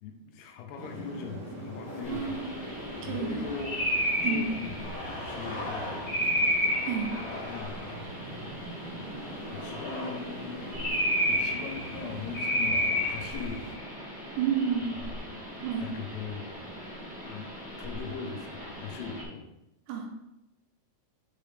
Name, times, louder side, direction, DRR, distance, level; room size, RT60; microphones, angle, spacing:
voice 1, 0.0-2.7 3.0-3.9 4.2-6.6 7.4-7.7 8.9-9.2 9.5-10.7 11.3-13.6 14.9-16.6 17.2-17.5 17.8-19.5, left 6 dB, 85° left, 3 dB, 3.0 m, -40 dB
sound 1, 0.8-13.7, right 1 dB, 50° right, 1.5 m, -43 dB
sound 2, 1.8-2.5 3.0-3.1 4.1-4.3 4.7-6.2 6.6-8.0 8.9-10.1, left 2 dB, 50° left, 1.7 m, -41 dB
sound 3, 2.0-19.2, equal, 5° right, 0.7 m, -33 dB
voice 2, 2.1-2.5 3.0-3.6 4.2-4.5 6.8-7.1 14.4-15.0 15.6-15.9 19.9-20.1, right 7 dB, 85° right, 2 dB, 3.0 m, -30 dB
7.4 x 5.0 x 3.3 m, 0.91 s
omnidirectional pair, 4.7 m